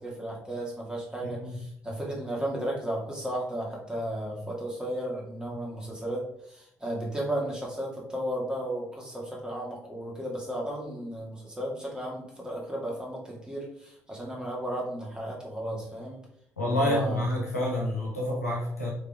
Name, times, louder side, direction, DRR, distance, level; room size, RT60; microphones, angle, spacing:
voice 1, 0.0-16.2 16.6-17.3, right 1 dB, 10° right, -3 dB, 2.3 m, -34 dB
voice 2, 16.6-18.9, left 1 dB, 85° left, -4 dB, 1.5 m, -28 dB
5.5 x 4.9 x 3.6 m, 0.72 s
figure-of-eight pair, 45°, 8 cm